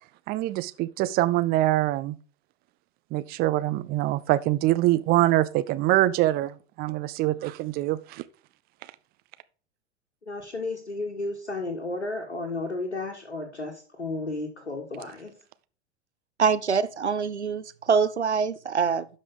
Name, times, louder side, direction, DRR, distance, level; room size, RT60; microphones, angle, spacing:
voice 1, 0.3-2.2 3.1-8.2, right 16 dB, 30° right, 0.5 m, -24 dB
voice 2, 10.2-15.3, left 2 dB, 80° left, 1.6 m, -33 dB
voice 3, 16.4-19.1, right 6 dB, 85° right, 0.6 m, -24 dB
12.0 x 5.2 x 3.8 m
figure-of-eight pair, 90°, 33 cm